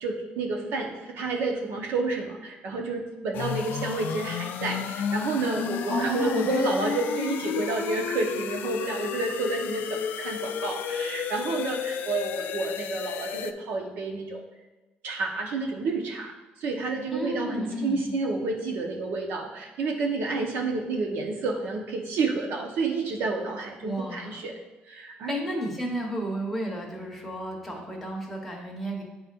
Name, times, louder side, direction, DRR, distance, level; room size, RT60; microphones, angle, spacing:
voice 1, 0.0-14.4 15.0-16.3 16.6-24.5 24.9-25.3, right 3 dB, 75° right, 2 dB, 1.0 m, -30 dB
sound 1, 3.3-13.5, left 8 dB, 65° left, 0.4 m, -32 dB
voice 2, 5.9-6.8 17.1-18.1 23.8-24.4 25.3-29.0, equal, ahead, -3 dB, 1.1 m, -32 dB
9.0 x 4.2 x 2.5 m, 1.1 s
cardioid pair, 155°, 4 cm